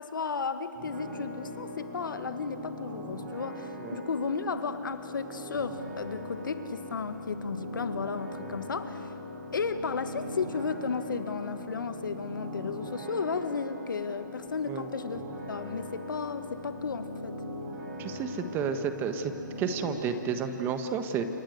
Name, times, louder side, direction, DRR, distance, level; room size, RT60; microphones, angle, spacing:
voice 1, 0.0-9.1 9.5-15.2 15.5-17.3, left 5 dB, 80° left, 10 dB, 1.7 m, -34 dB
sound 1, 0.7-20.0, left 1 dB, 40° right, 6.9 m, -40 dB
voice 2, 18.0-19.3 19.6-21.2, right 6 dB, 20° right, 8 dB, 1.4 m, -31 dB
28.5 x 24.5 x 8.0 m, 2.9 s
hypercardioid pair, 145°, 11 cm